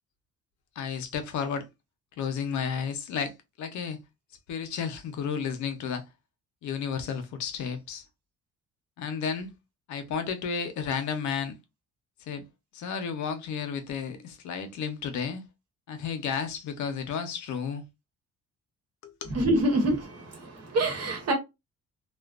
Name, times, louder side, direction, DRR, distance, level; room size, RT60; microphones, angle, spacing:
voice 1, 0.8-1.6 2.2-4.0 4.5-6.0 6.6-8.0 9.0-9.5 9.9-11.5 12.3-12.4 12.7-15.4 15.9-17.8 19.0-19.3, left 6 dB, 70° left, 0.6 m, -32 dB
voice 2, 19.3-21.3, right 1 dB, 55° right, 1.1 m, -26 dB
2.4 x 2.2 x 2.3 m
cardioid pair, 90°, 30 cm